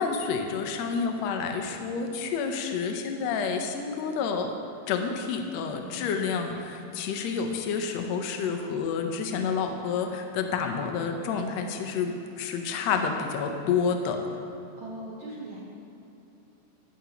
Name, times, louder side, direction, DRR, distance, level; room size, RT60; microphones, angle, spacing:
voice 1, 0.0-4.5 4.9-14.2, left 5 dB, 85° left, 4 dB, 1.5 m, -29 dB
sound 1, 5.2-10.7, right 1 dB, 5° right, 0.9 m, -51 dB
voice 2, 14.8-15.6, right 1 dB, 85° right, -4 dB, 1.1 m, -39 dB
17.0 x 6.9 x 2.9 m, 2.9 s
omnidirectional pair, 3.9 m